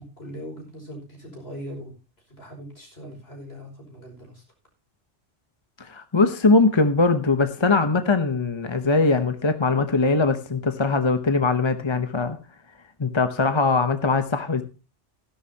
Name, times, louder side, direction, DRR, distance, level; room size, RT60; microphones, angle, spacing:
voice 1, 0.0-1.9 2.3-4.4, equal, 60° left, 1 dB, 5.8 m, -40 dB
voice 2, 5.8-12.4 13.0-14.6, left 3 dB, 25° left, 9 dB, 0.9 m, -21 dB
16.0 x 11.5 x 2.8 m, 0.31 s
omnidirectional pair, 1.2 m